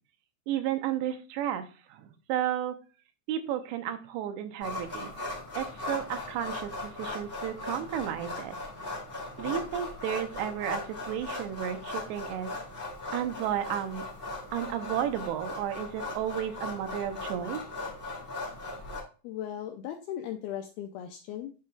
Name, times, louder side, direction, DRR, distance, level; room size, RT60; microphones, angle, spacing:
voice 1, 0.5-1.6 1.9-2.8 3.3-5.1 5.6-8.6 9.4-12.5 13.1-14.0 14.5-17.6, right 10 dB, 80° right, 8 dB, 3.0 m, -33 dB
sound 1, 4.6-19.0, left 2 dB, 25° left, 1.3 m, -38 dB
voice 2, 19.2-21.5, left 10 dB, 85° left, 5 dB, 2.2 m, -37 dB
11.5 x 5.4 x 2.3 m, 0.35 s
omnidirectional pair, 5.1 m